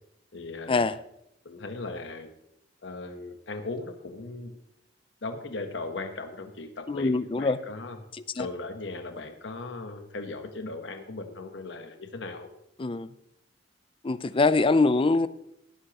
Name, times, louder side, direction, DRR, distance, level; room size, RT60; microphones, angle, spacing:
voice 1, 0.3-0.9 1.4-2.3 2.8-4.6 5.2-8.0 8.4-12.5, left 3 dB, 70° left, 1.1 m, -38 dB
voice 2, 6.9-7.6 8.4-8.5 12.8-13.1 14.0-15.3, left 3 dB, 30° left, 0.4 m, -23 dB
18.0 x 10.0 x 2.9 m
head